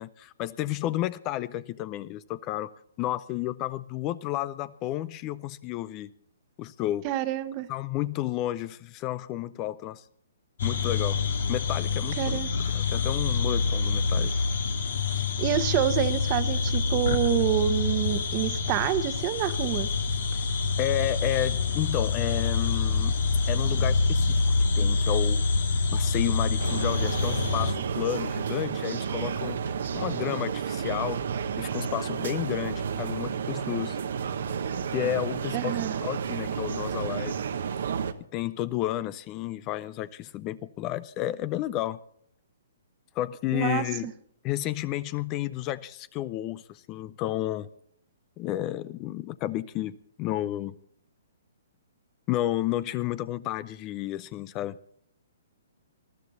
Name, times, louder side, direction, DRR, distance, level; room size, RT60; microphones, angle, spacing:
voice 1, 0.0-2.7 3.0-6.1 6.6-7.0 7.7-10.0 10.6-11.2 11.5-12.4 12.7-14.3 20.8-23.1 23.5-24.4 24.8-25.4 25.9-29.6 29.9-31.2 31.6-34.0 34.9-37.4 38.3-42.0 43.2-44.1 44.4-47.7 48.4-50.7 52.3-54.8, left 14 dB, 30° left, 18 dB, 0.5 m, -31 dB
voice 2, 7.0-7.7 12.2-12.5 15.2-19.9 35.5-35.9 43.5-44.1, right 12 dB, 35° right, 12 dB, 1.2 m, -27 dB
sound 1, 10.6-27.7, left 4 dB, 70° left, 2.0 m, -26 dB
sound 2, 26.6-38.1, right 7 dB, 70° right, 1.1 m, -31 dB
19.5 x 12.5 x 4.1 m, 0.65 s
hypercardioid pair, 135°, 0 cm